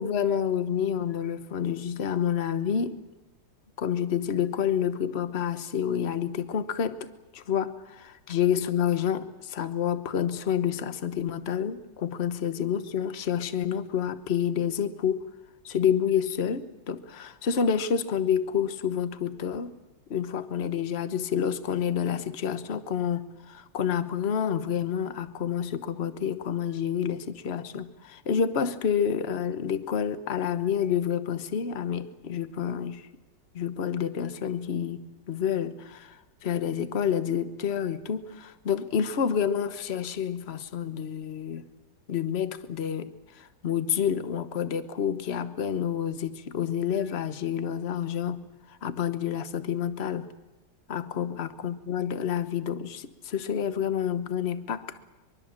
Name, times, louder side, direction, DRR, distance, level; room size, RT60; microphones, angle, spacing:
voice 1, 0.0-3.0 3.8-7.1 7.3-15.3 15.6-19.7 20.1-33.0 33.5-36.2 36.4-41.6 42.1-48.5 48.8-50.3 50.9-54.9, left 8 dB, 40° left, 12 dB, 1.1 m, -28 dB
23.5 x 23.0 x 7.4 m, 1.1 s
omnidirectional pair, 2.0 m